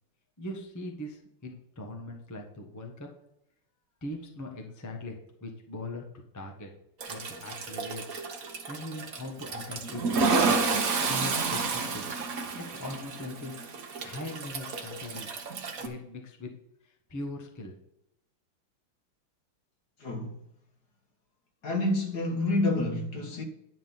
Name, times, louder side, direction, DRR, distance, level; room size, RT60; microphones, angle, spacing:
voice 1, 0.4-3.1 4.0-6.0 6.3-6.7 7.1-8.0 8.7-10.0 10.5-12.0 12.5-13.5 14.0-15.3 15.8-16.5 16.8-17.7, left 1 dB, 10° left, 0.9 m, -40 dB
Toilet flush, 7.0-15.9, right 4 dB, 45° right, 1.3 m, -31 dB
voice 2, 20.0-20.3 21.6-23.4, left 2 dB, 50° left, 1.9 m, -28 dB
10.5 x 4.0 x 7.3 m
omnidirectional pair, 2.4 m